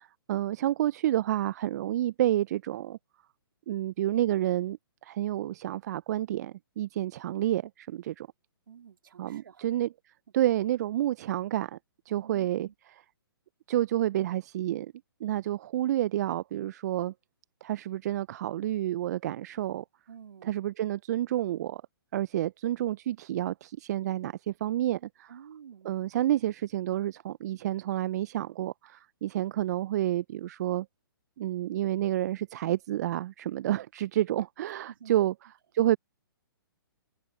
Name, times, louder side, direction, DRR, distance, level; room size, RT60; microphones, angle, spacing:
voice 1, 0.0-3.0 3.7-4.8 5.0-8.3 9.2-9.9 10.3-11.8 12.1-12.7 13.7-14.9 15.2-17.1 17.6-19.8 20.4-21.8 22.1-25.3 25.8-30.9 31.4-35.3 35.7-36.0, right 13 dB, 45° right, 0.6 m, -29 dB
voice 2, 8.7-9.7 12.1-12.7 20.1-20.5 25.3-26.0 34.9-35.3, right 8 dB, 65° right, 4.1 m, -50 dB
figure-of-eight pair, 130°, 12 cm